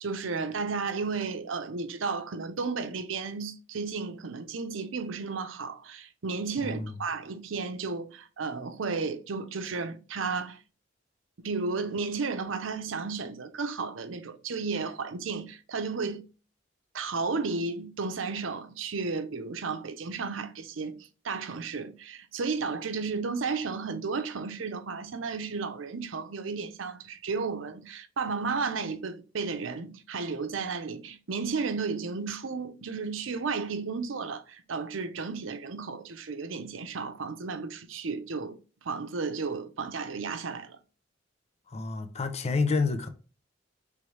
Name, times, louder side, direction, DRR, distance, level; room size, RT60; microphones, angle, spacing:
voice 1, 0.0-10.6 11.4-16.2 16.9-20.9 21.2-38.6 38.8-40.8, right 4 dB, 85° right, 0.6 m, -33 dB
voice 2, 41.7-43.1, left 4 dB, 35° left, 0.5 m, -28 dB
3.3 x 3.1 x 4.6 m
head